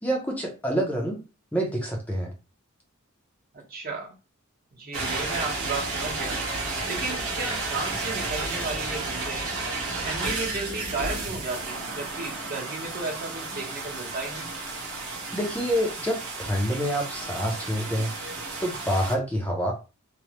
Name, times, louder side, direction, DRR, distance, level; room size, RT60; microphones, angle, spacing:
voice 1, 0.0-1.2 1.5-2.3 15.3-18.1 18.6-19.7, equal, 5° left, -1 dB, 0.5 m, -27 dB
voice 2, 3.5-4.1 4.7-6.4 6.9-9.5 10.0-14.5, right 3 dB, 45° right, -1 dB, 0.9 m, -34 dB
sound 1, 4.9-19.1, right 3 dB, 70° right, 0.8 m, -32 dB
3.1 x 2.0 x 2.8 m, 0.31 s
head